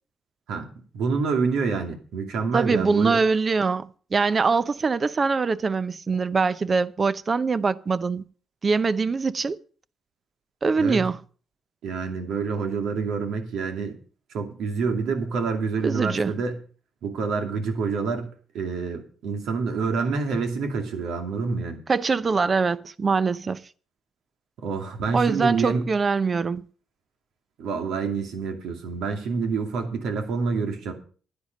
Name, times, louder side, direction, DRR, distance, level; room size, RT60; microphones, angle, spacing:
voice 1, 0.9-3.2 10.8-11.1 11.8-14.0 14.3-16.6 17.0-18.3 18.5-21.8 24.6-25.9 27.6-30.9, right 4 dB, 80° right, 2.5 m, -27 dB
voice 2, 2.5-8.3 8.6-9.6 10.6-11.2 15.8-16.3 21.9-23.6 25.1-26.7, right 4 dB, 35° right, 0.6 m, -23 dB
10.5 x 10.0 x 5.3 m
cardioid pair, 90°, 0 cm